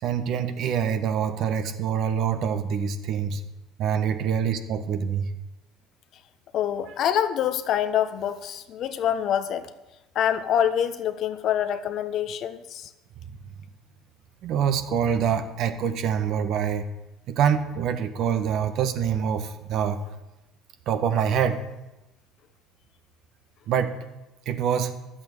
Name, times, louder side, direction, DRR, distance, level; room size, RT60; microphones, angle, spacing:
voice 1, 0.0-3.4 3.8-5.2 13.3-13.4 14.4-16.8 17.3-20.0 20.9-21.6 23.7-23.9 24.4-24.9, right 8 dB, 60° right, 8 dB, 1.5 m, -25 dB
voice 2, 6.5-9.7 10.1-12.9, left 9 dB, 60° left, 11 dB, 1.1 m, -26 dB
11.5 x 8.3 x 8.0 m, 0.98 s
hypercardioid pair, 75°, 0 cm